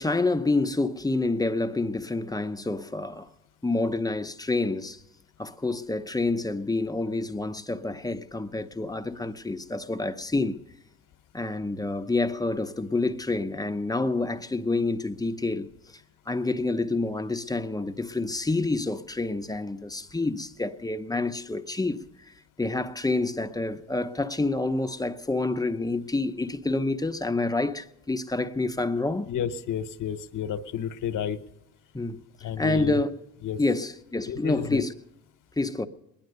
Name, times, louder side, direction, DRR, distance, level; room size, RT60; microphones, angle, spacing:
voice 1, 0.0-3.3 3.6-5.0 5.4-10.6 11.3-15.7 16.3-29.3 31.9-32.2 32.6-33.2 33.6-34.9 35.6-35.9, left 2 dB, 10° left, 0.7 m, -28 dB
voice 2, 29.3-31.4 32.4-33.0 33.4-33.6 34.3-34.8, left 9 dB, 70° left, 1.1 m, -31 dB
20.5 x 10.5 x 6.6 m
cardioid pair, 85°, 33 cm